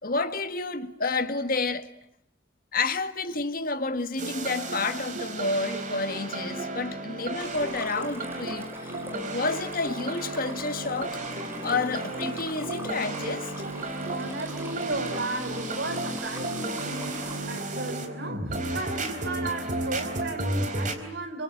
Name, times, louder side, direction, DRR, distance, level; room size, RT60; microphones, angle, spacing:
voice 1, 0.0-1.9 2.7-8.9 9.3-11.2 11.6-13.5, left 3 dB, 45° left, 1.8 m, -30 dB
sound 1, 4.2-20.9, right 2 dB, 40° right, 4.2 m, -33 dB
Stream, 7.4-17.4, right 1 dB, 10° right, 5.2 m, -45 dB
voice 2, 14.1-21.4, right 2 dB, 60° right, 4.9 m, -35 dB
29.5 x 25.5 x 7.9 m
head